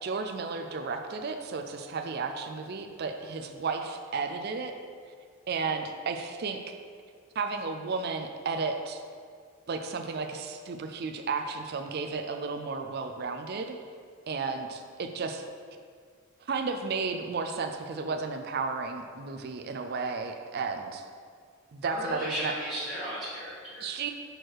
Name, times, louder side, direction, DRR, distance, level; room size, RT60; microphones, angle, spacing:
voice 1, 0.0-4.7 5.5-6.6 7.4-9.0 9.7-13.8 14.3-15.5 16.4-21.0 21.7-22.5 23.8-24.1, right 4 dB, 45° right, 5 dB, 0.4 m, -33 dB
voice 2, 21.8-23.9, equal, ahead, -13 dB, 1.4 m, -35 dB
6.4 x 4.6 x 4.5 m, 2.1 s
head